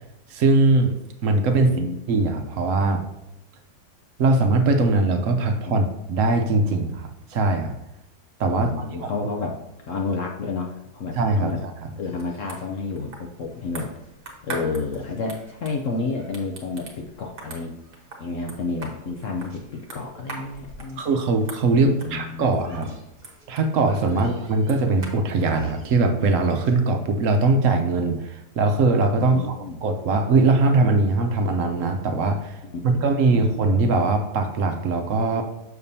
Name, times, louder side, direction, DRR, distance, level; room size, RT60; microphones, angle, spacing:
voice 1, 0.3-0.9 1.2-1.7 2.1-3.0 4.2-7.7 8.4-8.7 9.0-9.3 11.1-11.9 21.0-22.9 23.5-29.4 29.8-32.6 32.8-35.4, right 3 dB, 60° right, 6 dB, 1.0 m, -21 dB
voice 2, 1.5-2.0 5.6-5.8 8.6-11.6 12.0-13.9 14.4-17.7 18.2-21.0 21.7-22.9 24.1-24.3 29.2-29.8 32.6-33.3, left 4 dB, 60° left, 1 dB, 0.9 m, -31 dB
sound 1, 11.8-26.8, right 2 dB, 35° right, 1.3 m, -43 dB
7.0 x 6.7 x 2.7 m, 0.88 s
omnidirectional pair, 1.7 m